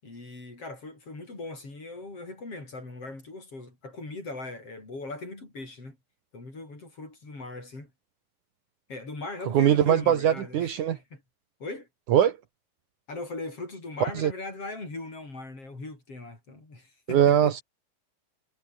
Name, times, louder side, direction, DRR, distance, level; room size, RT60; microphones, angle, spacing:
voice 1, 0.0-6.0 6.3-7.9 8.9-11.2 11.6-11.9 13.1-17.6, left 2 dB, 40° left, 8.7 m, -39 dB
voice 2, 9.5-11.0 12.1-12.4 14.2-14.3 17.1-17.6, right 10 dB, 65° right, 2.6 m, -21 dB
omnidirectional pair, 4.1 m